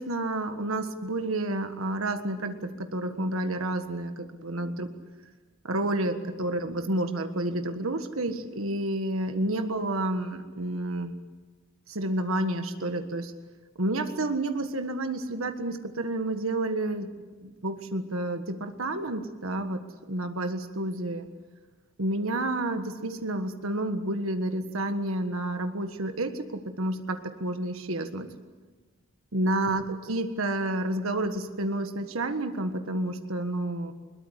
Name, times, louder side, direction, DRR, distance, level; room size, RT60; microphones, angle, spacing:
voice 1, 0.0-4.9 5.6-11.1 11.9-13.3 13.8-21.3 22.0-28.3 29.3-33.9, right 1 dB, 75° right, 7 dB, 1.6 m, -30 dB
21.5 x 21.0 x 8.2 m, 1.3 s
head